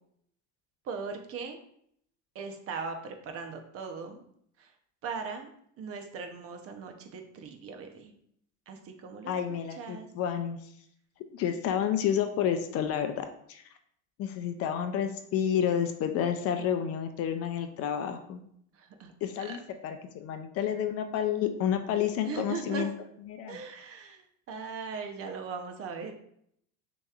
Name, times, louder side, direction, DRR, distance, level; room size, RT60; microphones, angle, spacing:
voice 1, 0.8-1.6 2.3-4.2 4.6-4.7 5.0-5.5 5.8-8.1 8.7-9.3 9.8-10.1 18.7-19.1 19.4-19.6 22.3-22.9 23.5-26.1, right 5 dB, 40° right, 5 dB, 0.8 m, -39 dB
voice 2, 9.3-10.7 11.3-13.6 14.2-18.4 19.2-22.9 23.3-23.6, left 9 dB, 45° left, 8 dB, 0.4 m, -30 dB
6.4 x 3.0 x 2.4 m, 0.69 s
supercardioid pair, 130°, 35 cm